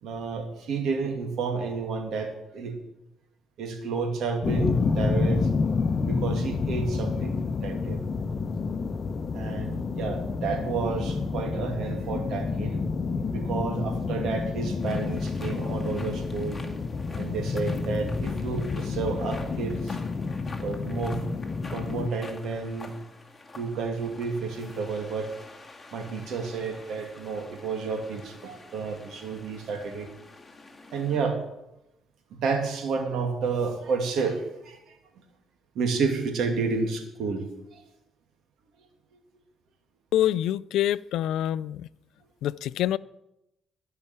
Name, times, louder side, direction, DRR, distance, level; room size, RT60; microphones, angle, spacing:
voice 1, 0.0-2.8 3.6-5.5 6.1-8.0 9.3-12.8 13.3-16.6 17.1-20.0 20.6-21.2 21.7-23.0 23.6-25.3 25.9-30.1 30.9-31.4 32.3-35.0 35.7-37.4 37.7-37.9, right 4 dB, 75° right, 4 dB, 2.4 m, -30 dB
sound 1, 4.4-22.1, left 4 dB, 40° left, 0.9 m, -29 dB
sound 2, 14.8-31.2, left 3 dB, 15° left, 2.2 m, -48 dB
voice 2, 40.1-41.9 42.4-43.0, left 12 dB, 85° left, 19 dB, 0.3 m, -26 dB
14.0 x 5.7 x 9.0 m, 0.89 s
cardioid pair, 90°, 0 cm